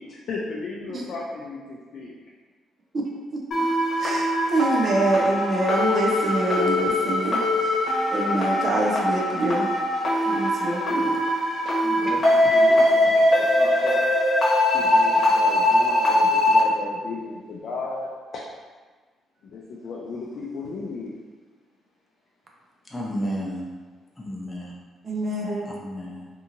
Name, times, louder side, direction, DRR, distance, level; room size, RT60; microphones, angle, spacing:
voice 1, 0.1-2.1 11.6-14.0 14.7-18.4 19.4-21.1, left 3 dB, 65° left, -3 dB, 0.4 m, -35 dB
sound 1, 3.5-16.6, left 1 dB, 45° left, 1.0 m, -21 dB
voice 2, 4.0-7.7 8.1-9.7 10.3-11.2 25.0-25.7, right 2 dB, 40° right, -2 dB, 0.5 m, -25 dB
voice 3, 22.8-23.7 24.2-24.7 25.6-26.3, equal, 10° left, -5 dB, 0.5 m, -32 dB
2.7 x 2.7 x 2.5 m, 1.4 s
cardioid pair, 90°, 0 cm